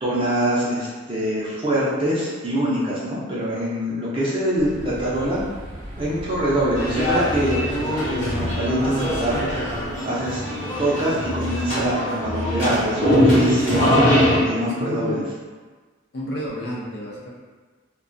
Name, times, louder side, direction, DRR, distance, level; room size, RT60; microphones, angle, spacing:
voice 1, 0.0-5.5 6.0-9.4 10.0-10.4 10.8-13.9 14.4-15.2, right 1 dB, 25° right, -8 dB, 0.5 m, -24 dB
sound 1, 4.6-10.0, equal, 65° right, 0.7 m, -37 dB
sound 2, 6.7-14.4, equal, 35° left, 0.9 m, -22 dB
voice 2, 14.8-15.2 16.1-17.3, equal, 55° left, -4 dB, 0.5 m, -30 dB
2.2 x 2.2 x 2.5 m, 1.4 s
head